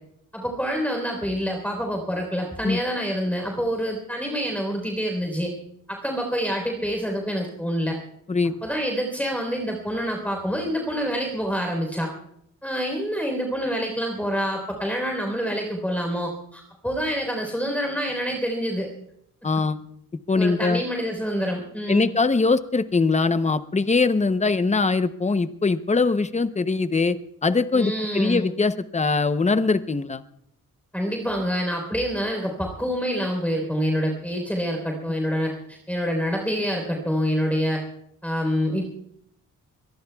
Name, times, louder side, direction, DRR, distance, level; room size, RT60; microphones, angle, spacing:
voice 1, 0.3-5.5 5.9-8.0 8.6-12.1 12.6-18.9 20.3-22.1 27.7-28.5 30.9-37.8 38.2-39.0, equal, 5° left, 1 dB, 3.8 m, -27 dB
voice 2, 8.3-8.6 19.4-19.8 20.3-20.8 21.9-30.2, left 4 dB, 20° left, 11 dB, 0.7 m, -22 dB
24.5 x 22.0 x 2.3 m, 0.71 s
wide cardioid pair, 140°, 33 cm